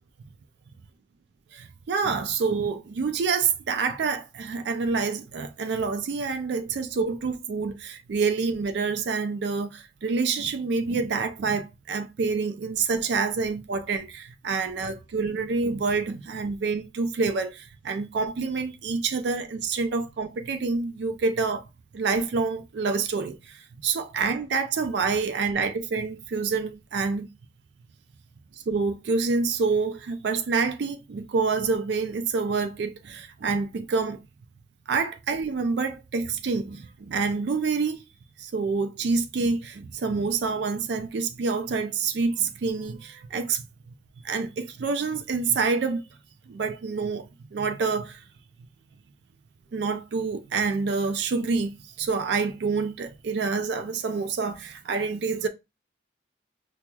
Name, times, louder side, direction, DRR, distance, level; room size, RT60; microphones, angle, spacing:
voice 1, 1.5-21.6 21.9-27.3 28.5-34.2 34.9-38.0 38.4-43.6 44.2-46.0 46.5-48.2 49.7-51.7 52.0-55.5, right 4 dB, 70° right, 0.4 m, -27 dB
5.8 x 2.1 x 2.2 m
head